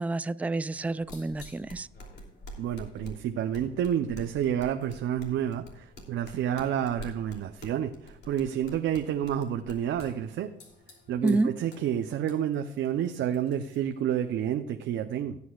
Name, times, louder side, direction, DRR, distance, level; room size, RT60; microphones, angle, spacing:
voice 1, 0.0-1.9 11.2-11.6, right 2 dB, 5° right, 15 dB, 0.3 m, -28 dB
sound 1, 0.7-14.5, left 1 dB, 60° left, 2.9 m, -48 dB
voice 2, 2.6-10.5 11.1-15.4, right 10 dB, 75° right, 6 dB, 0.7 m, -29 dB
17.0 x 8.4 x 2.4 m, 0.79 s
cardioid pair, 90°, 20 cm